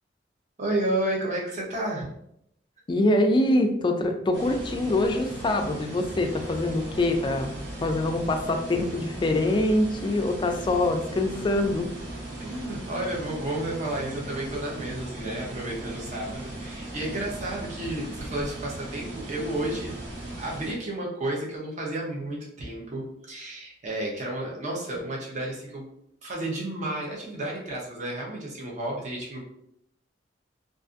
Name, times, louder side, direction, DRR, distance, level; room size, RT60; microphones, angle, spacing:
voice 1, 0.6-2.1 12.4-19.9 20.4-25.9 26.2-29.4, right 1 dB, 40° right, -2 dB, 0.7 m, -32 dB
voice 2, 2.9-11.9, left 1 dB, 25° left, 4 dB, 0.3 m, -24 dB
sound 1, 4.3-20.7, right 1 dB, 75° right, 0.9 m, -38 dB
2.4 x 2.4 x 2.5 m, 0.74 s
head